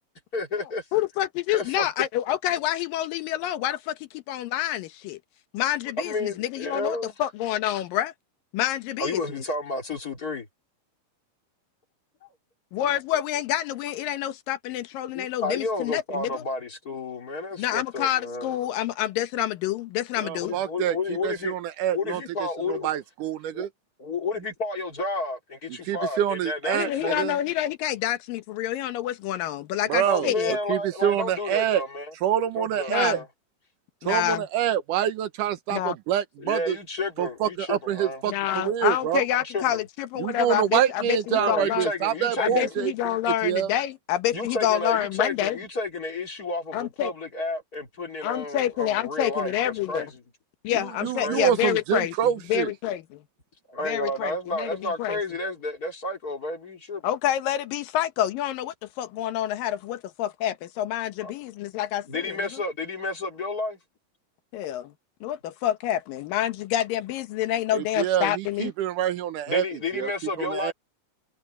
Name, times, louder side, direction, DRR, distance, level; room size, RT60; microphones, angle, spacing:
voice 1, 0.3-0.8 1.5-2.1 6.0-7.1 9.0-10.5 15.1-18.6 20.4-21.6 21.9-22.9 23.5-23.7 24.0-27.2 30.0-32.1 32.6-33.2 36.4-38.2 39.1-39.8 41.4-42.7 44.3-50.2 51.0-51.6 53.7-57.1 61.2-61.3 62.1-63.8 69.5-70.7, left 2 dB, 30° left, 2.9 m, -31 dB
voice 2, 0.9-5.2 5.5-8.1 8.5-9.4 12.7-16.4 17.6-20.6 26.7-30.6 32.9-33.2 34.0-34.5 35.7-36.0 38.3-41.9 42.4-45.6 46.7-47.1 48.2-50.1 50.6-52.1 52.5-53.2 53.8-55.2 57.0-62.6 64.5-64.9 65.2-68.7, left 12 dB, 85° left, 2.8 m, -28 dB
voice 3, 20.2-21.0 21.2-22.2 22.7-23.7 25.8-27.4 29.9-30.3 30.7-31.8 32.2-33.2 34.1-36.8 37.2-39.2 40.2-42.9 43.4-43.7 50.8-52.7 67.7-70.1 70.4-70.7, right 10 dB, 75° right, 2.3 m, -26 dB
omnidirectional pair, 3.9 m